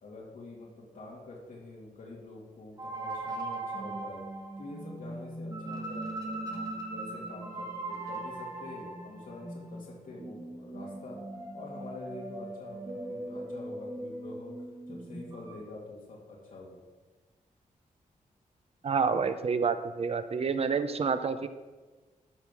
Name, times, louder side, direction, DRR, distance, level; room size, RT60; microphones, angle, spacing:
voice 1, 0.0-4.2 4.6-11.2 11.5-16.8, left 2 dB, 70° left, -4 dB, 2.5 m, -46 dB
sound 1, 2.8-15.5, right 2 dB, 25° right, 1.9 m, -39 dB
voice 2, 18.8-21.5, right 5 dB, 45° right, 10 dB, 0.6 m, -28 dB
13.0 x 5.4 x 6.2 m, 1.3 s
wide cardioid pair, 155°, 14 cm